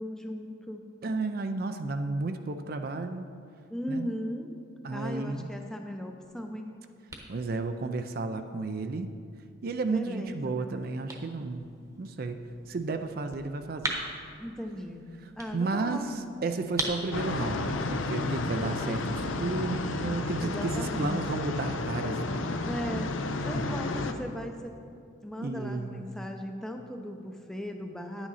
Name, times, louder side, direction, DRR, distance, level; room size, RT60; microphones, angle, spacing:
voice 1, 0.0-0.9 3.7-4.5 4.9-6.7 9.9-10.8 14.4-15.0 15.4-16.1 18.9-19.4 20.4-21.3 22.6-23.1 23.4-24.7 25.2-28.3, equal, 5° left, 3 dB, 0.6 m, -37 dB
voice 2, 1.0-3.3 3.9-4.1 4.8-5.5 7.3-9.1 9.6-11.7 12.0-12.4 12.7-13.9 15.5-22.2 23.5-23.7 25.4-26.1, right 3 dB, 50° right, 8 dB, 0.4 m, -32 dB
sound 1, 6.2-19.7, right 2 dB, 15° right, 1.0 m, -43 dB
sound 2, 17.1-24.1, left 3 dB, 75° left, 0.6 m, -32 dB
10.5 x 8.8 x 4.1 m, 2.3 s
head